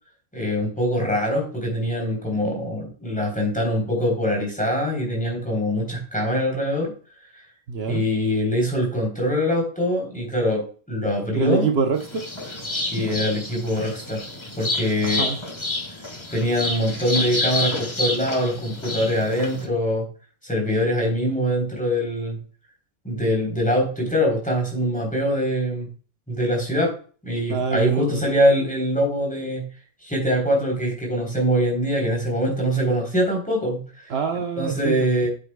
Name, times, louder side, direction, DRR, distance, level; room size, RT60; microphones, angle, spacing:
voice 1, 0.3-6.9 7.9-11.7 12.9-14.2 14.6-15.3 16.3-20.0 20.4-22.4 23.0-25.9 26.3-26.9 27.2-29.7 30.0-33.8 34.6-35.3, equal, 5° left, 3.5 m, -23 dB
voice 2, 7.7-8.0 11.3-12.3 15.0-15.4 27.5-28.2 34.1-35.3, right 5 dB, 70° right, 1.1 m, -25 dB
sound 1, 11.9-19.7, left 2 dB, 25° left, 1.3 m, -29 dB
8.5 x 8.0 x 2.2 m
omnidirectional pair, 1.1 m